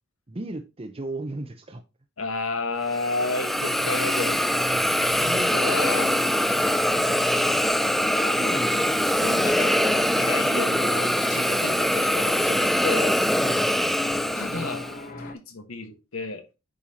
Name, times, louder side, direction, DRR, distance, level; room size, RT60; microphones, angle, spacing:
voice 1, 0.3-1.8 5.3-5.6 8.2-9.0 13.4-14.3, right 2 dB, 30° right, 0.7 m, -36 dB
voice 2, 2.2-4.4 5.2-7.8 9.2-13.2 14.3-14.8 15.2-16.4, left 3 dB, 80° left, 1.5 m, -32 dB
Hiss, 2.9-15.0, equal, ahead, 0.3 m, -23 dB
piano torture, 3.5-15.3, left 3 dB, 40° left, 1.1 m, -37 dB
8.7 x 5.5 x 2.9 m
head